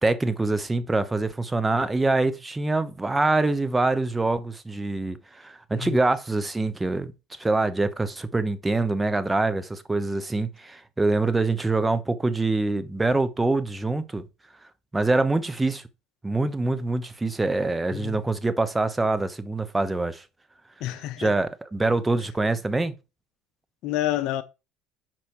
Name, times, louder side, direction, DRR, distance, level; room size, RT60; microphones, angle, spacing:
voice 1, 0.0-7.1 7.4-14.2 14.9-15.8 16.2-20.2 21.2-22.9, right 2 dB, 15° right, 0.9 m, -25 dB
voice 2, 17.9-18.3 20.8-21.3 23.8-24.4, left 13 dB, 65° left, 0.6 m, -29 dB
6.1 x 5.0 x 4.6 m
supercardioid pair, 95°, 0 cm